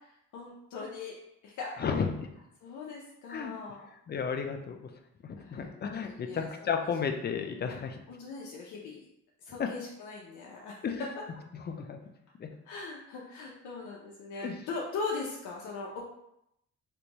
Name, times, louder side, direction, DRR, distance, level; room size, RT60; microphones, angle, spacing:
voice 1, 0.3-1.1 1.4-1.9 2.6-3.9 5.4-5.8 6.1-6.5 8.1-9.0 9.5-10.7 12.7-16.0, left 4 dB, 75° left, -3 dB, 0.6 m, -40 dB
voice 2, 1.8-2.3 3.3-3.5 4.1-4.9 5.2-8.0 9.6-9.7 10.8-11.1 11.5-12.0 12.4-12.5 14.3-14.6, left 6 dB, 35° left, 5 dB, 0.5 m, -33 dB
3.3 x 2.6 x 2.9 m, 0.80 s
cardioid pair, 90°, 30 cm